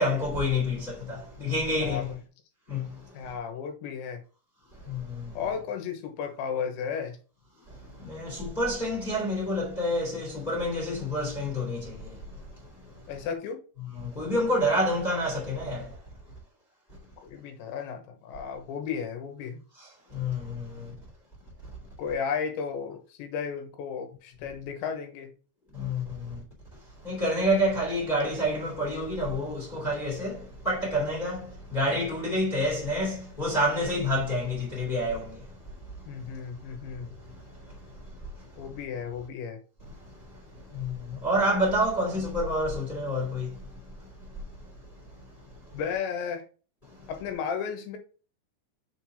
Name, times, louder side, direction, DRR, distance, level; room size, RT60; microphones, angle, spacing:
voice 1, 0.0-2.1 2.7-2.9 4.9-5.0 8.0-11.8 14.1-15.8 20.2-20.5 25.8-26.0 27.0-30.4 30.6-31.4 31.7-35.2 40.8-40.9 41.2-43.5, equal, 15° left, 2.0 m, -27 dB
voice 2, 3.1-4.2 5.4-7.2 13.1-13.6 17.2-19.6 22.0-25.4 36.1-37.1 38.6-39.6 45.7-46.4 47.1-48.0, left 6 dB, 85° left, 3.5 m, -34 dB
6.6 x 4.6 x 3.6 m
omnidirectional pair, 5.1 m